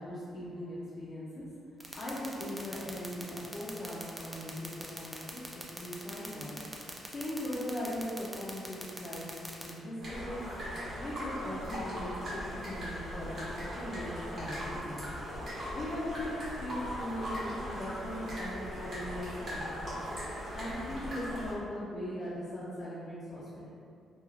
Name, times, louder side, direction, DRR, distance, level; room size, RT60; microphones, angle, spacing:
voice 1, 0.0-1.5 2.0-6.6 7.1-9.2 9.6-10.4 10.7-15.1 15.7-20.0 20.5-23.7, left 1 dB, 45° left, -10 dB, 0.5 m, -39 dB
sound 1, 1.8-9.7, right 1 dB, 5° right, 0.4 m, -41 dB
sound 2, 10.0-21.5, equal, 50° right, 1.1 m, -39 dB
3.1 x 2.2 x 2.4 m, 2.4 s
cardioid pair, 90°, 0 cm